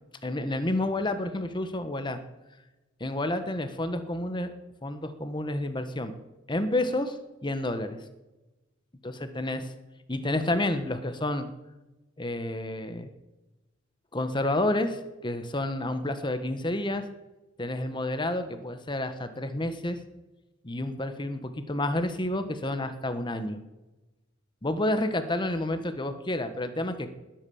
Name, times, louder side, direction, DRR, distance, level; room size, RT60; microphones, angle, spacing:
voice 1, 0.2-2.2 3.0-4.5 4.8-6.2 6.5-7.2 7.4-8.0 9.0-9.7 10.1-11.5 12.2-13.1 14.1-17.0 17.6-20.0 20.6-23.6 24.6-27.1, left 1 dB, 25° left, 9 dB, 1.3 m, -30 dB
20.0 x 9.1 x 7.1 m, 1.1 s
head